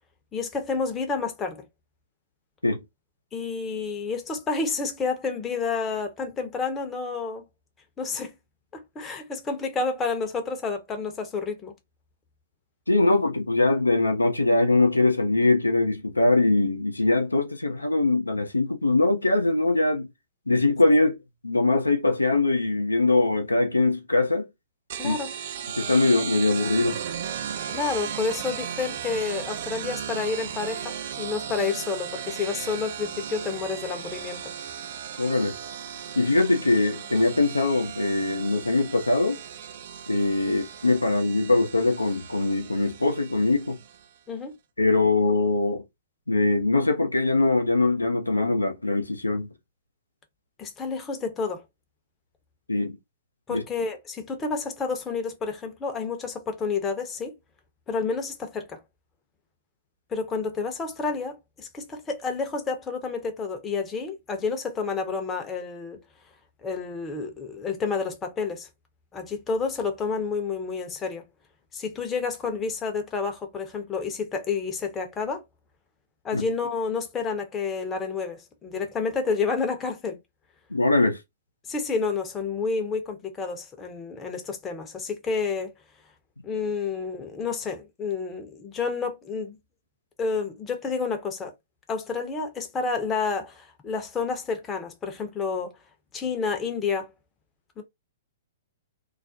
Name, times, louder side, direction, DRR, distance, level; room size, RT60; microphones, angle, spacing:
voice 1, 0.3-1.6 3.3-7.5 8.0-8.3 8.7-11.7 25.0-25.3 27.7-34.5 40.5-40.7 44.3-44.5 50.6-51.6 53.5-57.3 57.9-58.8 60.1-66.0 66.6-68.7 69.1-71.3 71.7-75.4 76.2-80.2 81.7-85.7 86.4-89.6 90.2-91.5 91.9-95.8 96.1-97.1 97.8-97.9, left 4 dB, 20° left, 0.6 m, -30 dB
voice 2, 12.9-20.1 20.5-21.2 21.4-24.5 25.0-25.1 25.8-27.0 35.2-35.6 36.2-39.4 40.1-43.8 44.8-45.8 46.3-49.5 52.7-53.0 53.5-53.6 76.3-76.4 80.7-81.2, left 2 dB, 90° left, 0.5 m, -22 dB
sound 1, 24.9-44.0, right 8 dB, 55° right, 0.3 m, -36 dB
2.3 x 2.0 x 2.6 m
figure-of-eight pair, 110°, 0 cm